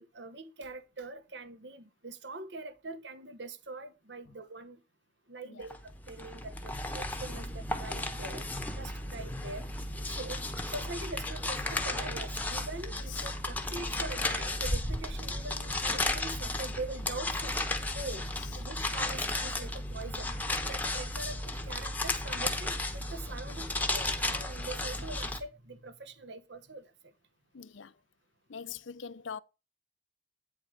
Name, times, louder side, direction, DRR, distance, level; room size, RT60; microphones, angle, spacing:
voice 1, 0.0-4.8 5.3-8.4 8.7-9.7 10.1-17.6 17.9-18.3 18.5-20.3 20.7-26.9, right 2 dB, 60° right, 1.1 m, -43 dB
sound 1, 5.7-25.4, left 2 dB, 10° left, 1.0 m, -34 dB
voice 2, 27.5-27.9 28.5-29.4, left 7 dB, 75° left, 0.6 m, -43 dB
9.2 x 4.7 x 5.0 m
head